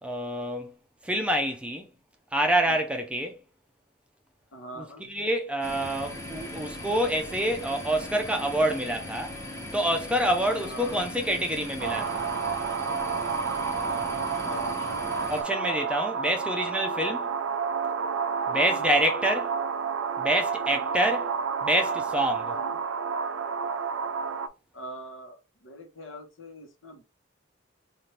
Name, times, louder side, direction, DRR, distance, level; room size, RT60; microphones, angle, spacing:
voice 1, 0.0-0.7 1.0-1.9 2.3-3.4 4.8-9.3 9.7-12.2 15.3-17.3 18.5-19.5 20.2-21.3 21.6-22.6, right 1 dB, 5° right, 0.5 m, -27 dB
voice 2, 4.5-5.0 10.6-11.0 14.1-15.1 18.5-18.9 20.7-21.0 22.5-22.8 24.7-27.0, equal, 75° left, 1.1 m, -43 dB
sound 1, 5.6-15.4, left 1 dB, 15° left, 1.0 m, -39 dB
sound 2, 11.8-24.5, right 6 dB, 85° right, 0.4 m, -30 dB
4.4 x 2.5 x 3.2 m
head